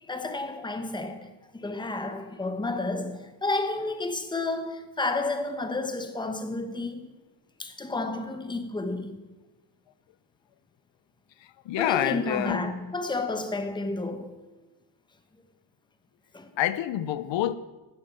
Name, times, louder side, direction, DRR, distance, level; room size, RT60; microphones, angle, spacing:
voice 1, 0.0-7.1 7.6-9.2 11.8-14.5 16.3-16.5, left 2 dB, 10° left, 1.0 m, -31 dB
voice 2, 11.7-12.7 16.6-17.5, left 12 dB, 90° left, 0.8 m, -27 dB
11.5 x 10.0 x 7.6 m
cardioid pair, 145°, 43 cm